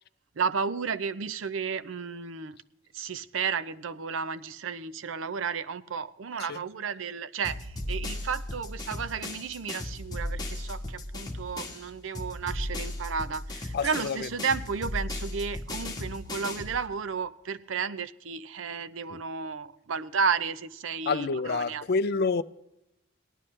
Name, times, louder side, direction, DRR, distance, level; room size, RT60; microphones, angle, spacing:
voice 1, 0.4-2.6 2.9-21.8, right 6 dB, 70° right, 0.6 m, -33 dB
sound 1, 7.4-11.9 12.1-16.8, left 1 dB, 20° left, 1.6 m, -36 dB
voice 2, 13.7-14.3 19.1-19.2 21.1-22.4, left 4 dB, 55° left, 0.4 m, -28 dB
18.0 x 11.5 x 3.2 m
head